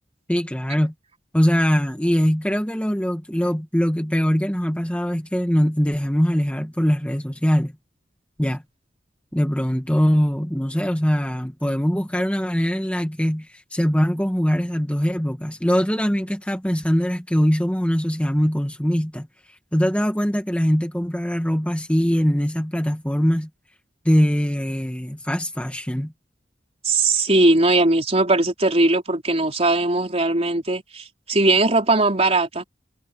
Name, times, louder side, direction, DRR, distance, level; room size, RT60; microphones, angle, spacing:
voice 1, 0.3-0.9 1.3-7.7 8.4-8.6 9.3-23.5 24.0-26.1, equal, 5° left, 1.8 m, -22 dB
voice 2, 26.8-32.6, right 2 dB, 35° right, 4.2 m, -19 dB
head